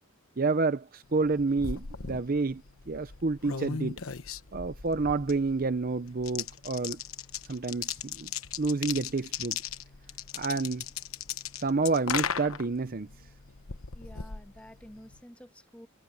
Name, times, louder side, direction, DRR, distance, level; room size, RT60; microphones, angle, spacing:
voice 1, 0.4-2.6 2.9-4.0 4.5-7.0 7.5-8.3 8.6-9.6 10.3-10.8 11.6-13.1, right 3 dB, 45° right, 0.6 m, -29 dB
sound 1, 1.2-15.2, left 7 dB, 85° left, 1.1 m, -38 dB
voice 2, 13.9-15.9, equal, 5° left, 2.3 m, -50 dB
head